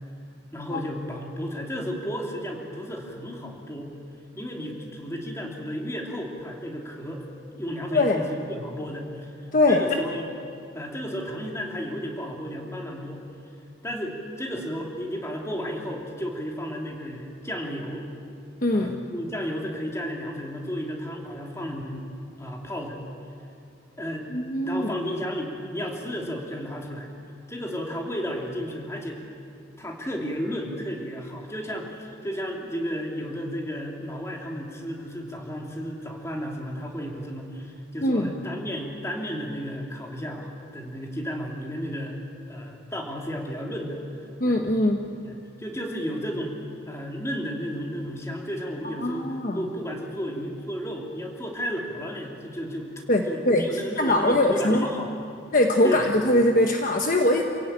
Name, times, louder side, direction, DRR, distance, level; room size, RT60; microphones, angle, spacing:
voice 1, 0.5-3.9 4.4-7.2 7.5-10.3 10.7-13.2 13.8-18.0 18.7-22.1 22.4-23.0 24.0-24.3 24.6-27.1 27.5-29.2 29.8-42.2 42.5-44.0 44.4-44.7 45.2-46.6 46.9-52.9 53.3-55.2 55.8-56.1, equal, 15° left, 0 dB, 3.0 m, -33 dB
voice 2, 7.9-8.2 9.5-9.8 18.6-19.0 24.3-24.9 38.0-38.3 44.4-45.0 49.0-49.7 53.1-54.9 55.5-57.4, left 1 dB, 45° left, 3 dB, 1.2 m, -22 dB
28.0 x 17.0 x 9.0 m, 2.6 s
head